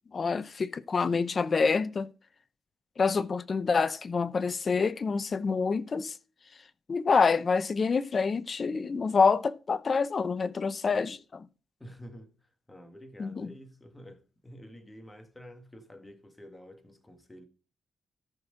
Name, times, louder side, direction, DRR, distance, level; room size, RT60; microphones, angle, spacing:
voice 1, 0.1-2.1 3.0-6.2 6.9-11.5 13.2-13.5, left 5 dB, 40° left, 0.7 m, -27 dB
voice 2, 11.8-17.5, equal, 10° left, 1.9 m, -49 dB
13.5 x 6.2 x 3.8 m
cardioid pair, 95°, 0 cm